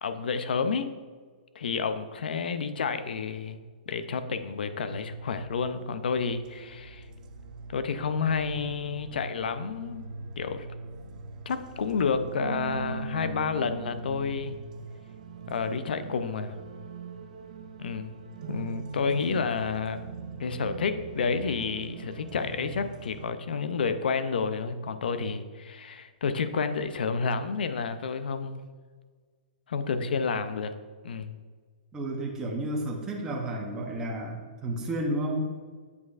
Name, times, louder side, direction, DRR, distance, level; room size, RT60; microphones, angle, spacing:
voice 1, 0.0-0.9 1.6-3.6 3.9-7.0 7.7-10.0 10.4-10.7 11.5-14.5 15.5-16.6 17.8-18.2 18.5-20.0 20.4-28.7 29.7-30.7 31.0-31.4, left 5 dB, 85° left, 10 dB, 0.5 m, -30 dB
sound 1, 4.8-23.3, right 4 dB, 55° right, 0.4 m, -41 dB
voice 2, 31.9-35.5, right 1 dB, 10° right, -1 dB, 0.7 m, -31 dB
8.2 x 4.8 x 2.4 m, 1.5 s
hypercardioid pair, 160°, 5 cm